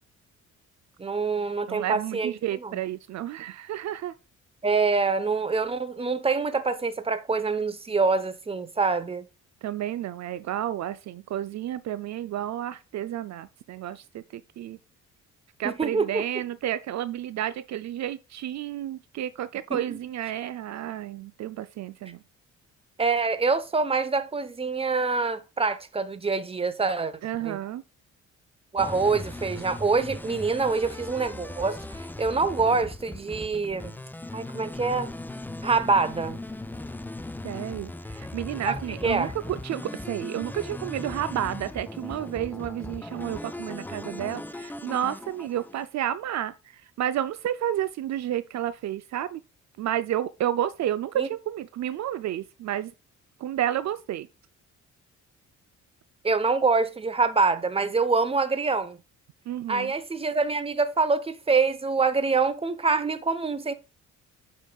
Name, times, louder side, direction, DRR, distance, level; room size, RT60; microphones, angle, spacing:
voice 1, 1.0-2.4 2.6-2.8 4.6-9.2 15.8-16.2 19.7-19.8 23.0-27.1 27.4-27.6 28.7-34.0 34.3-35.1 35.6-36.4 38.7-38.8 39.0-39.3 51.2-51.3 56.2-59.0 59.7-63.7, right 4 dB, 20° right, 0.9 m, -25 dB
voice 2, 1.7-4.1 9.6-14.8 15.6-22.2 27.2-27.8 32.7-32.8 37.4-49.4 49.8-52.9 53.4-54.3 59.5-59.9, right 11 dB, 65° right, 0.5 m, -31 dB
sound 1, 28.8-45.9, left 2 dB, 5° left, 0.4 m, -38 dB
8.4 x 5.4 x 2.3 m
cardioid pair, 90°, 30 cm